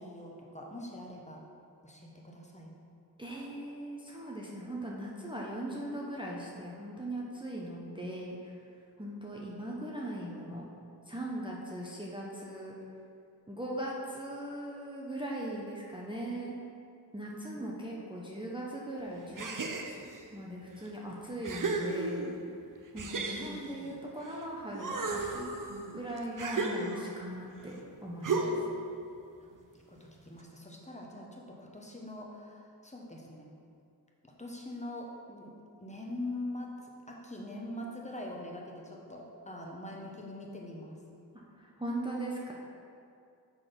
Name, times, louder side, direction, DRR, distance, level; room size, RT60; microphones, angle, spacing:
voice 1, 0.0-1.4 1.8-2.7 29.4-29.5 29.9-33.5 34.2-41.0, left 1 dB, 15° left, -1 dB, 1.0 m, -43 dB
voice 2, 3.2-8.6 9.0-10.6 11.1-12.8 13.5-16.5 17.1-20.0 20.3-22.2 22.9-25.5 25.9-28.5 41.6-42.5, right 1 dB, 10° right, -4 dB, 0.8 m, -39 dB
sound 1, 19.4-20.2 20.9-21.0 21.4-22.5 23.0-24.4 24.7-27.3 28.2-28.8, right 3 dB, 50° right, 0.6 m, -34 dB
6.1 x 4.1 x 5.2 m, 2.5 s
wide cardioid pair, 55°, 41 cm